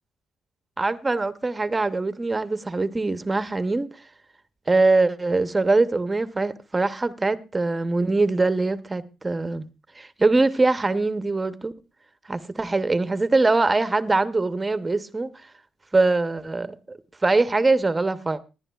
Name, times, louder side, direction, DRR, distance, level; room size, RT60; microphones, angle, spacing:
voice 1, 0.8-3.9 4.7-9.6 10.0-11.7 12.3-15.3 15.9-18.4, right 3 dB, 20° right, 0.7 m, -23 dB
20.0 x 11.0 x 2.3 m
cardioid pair, 90°, 0 cm